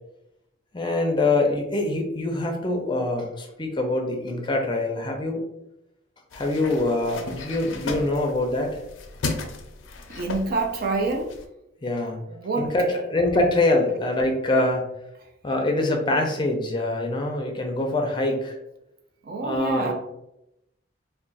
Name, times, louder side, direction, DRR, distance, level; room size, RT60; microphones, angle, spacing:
voice 1, 0.7-5.4 6.3-8.7 11.8-12.2 12.6-14.8 15.4-18.6 19.4-19.9, left 2 dB, 25° left, 2 dB, 0.4 m, -24 dB
sound 1, 6.3-11.5, left 3 dB, 80° left, 0.4 m, -35 dB
voice 2, 10.1-11.3 12.3-13.0 19.2-19.9, right 3 dB, 50° right, 4 dB, 0.4 m, -27 dB
2.4 x 2.2 x 3.8 m, 0.85 s
head